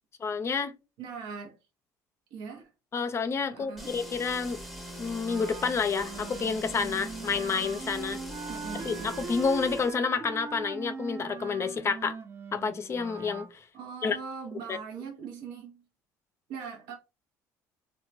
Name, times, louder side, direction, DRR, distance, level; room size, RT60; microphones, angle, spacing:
voice 1, 0.2-0.7 2.9-4.6 5.0-8.2 8.8-12.2 12.5-13.6 14.0-14.2 14.7-14.8, left 5 dB, 35° left, 0.4 m, -29 dB
voice 2, 1.0-1.6 2.3-2.7 3.5-3.9 8.5-9.2 13.7-15.8 16.5-16.9, right 6 dB, 70° right, 0.6 m, -40 dB
sound 1, 3.8-9.9, equal, ahead, 0.8 m, -42 dB
Wind instrument woodwind instrument, 5.2-13.5, right 5 dB, 30° right, 0.4 m, -41 dB
2.9 x 2.2 x 2.5 m
supercardioid pair, 80°, 8 cm